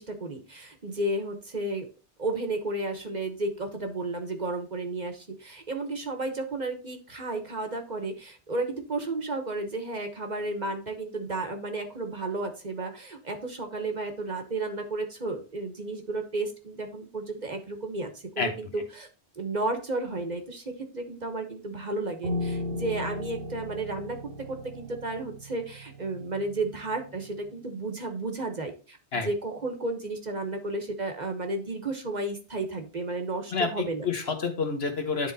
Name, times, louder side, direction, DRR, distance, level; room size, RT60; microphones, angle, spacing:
voice 1, 0.0-1.9 2.2-18.1 18.3-19.1 19.4-34.0, right 2 dB, 40° right, 6 dB, 1.2 m, -33 dB
Piano, 22.2-27.5, left 1 dB, 65° right, 1.3 m, -36 dB
voice 2, 33.5-35.3, left 4 dB, 65° left, 5 dB, 1.5 m, -28 dB
10.0 x 3.7 x 4.0 m, 0.35 s
omnidirectional pair, 1.2 m